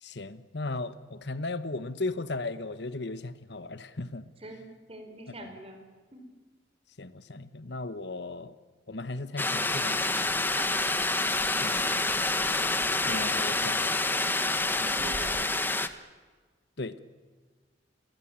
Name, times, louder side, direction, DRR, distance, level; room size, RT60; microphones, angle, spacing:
voice 1, 0.0-4.2 5.4-5.5 7.0-8.5 8.9-10.0 11.6-11.9 13.0-14.0 14.8-15.3 16.8-17.0, left 2 dB, 65° left, 13 dB, 1.2 m, -36 dB
voice 2, 4.4-5.8 6.1-6.2 10.5-10.9 14.8-15.5, right 2 dB, 30° right, 6 dB, 5.0 m, -43 dB
sound 1, 9.4-15.9, left 2 dB, 10° left, 1.2 m, -27 dB
sound 2, 9.7-15.4, right 4 dB, 75° right, 4.5 m, -46 dB
29.5 x 22.5 x 8.9 m, 1.4 s
head